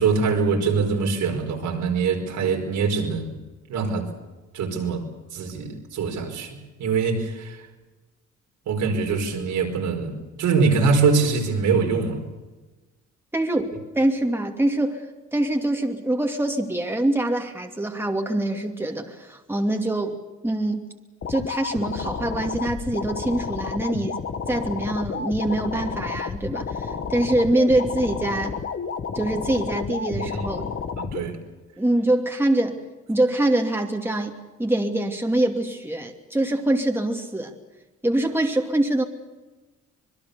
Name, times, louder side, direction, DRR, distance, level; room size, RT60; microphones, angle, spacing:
voice 1, 0.0-3.3 3.7-4.1 4.5-5.0 5.3-7.6 8.7-12.2 30.1-30.2 31.0-31.4, right 5 dB, 80° right, 1 dB, 5.0 m, -23 dB
voice 2, 13.3-15.1 15.3-20.2 20.4-20.9 21.3-24.2 24.5-28.6 29.1-30.7 31.8-37.5 38.0-39.0, right 1 dB, 5° right, 2 dB, 2.7 m, -24 dB
sound 1, 21.2-31.2, left 6 dB, 45° left, 1.8 m, -31 dB
25.5 x 21.5 x 7.0 m, 1.2 s
cardioid pair, 90°, 30 cm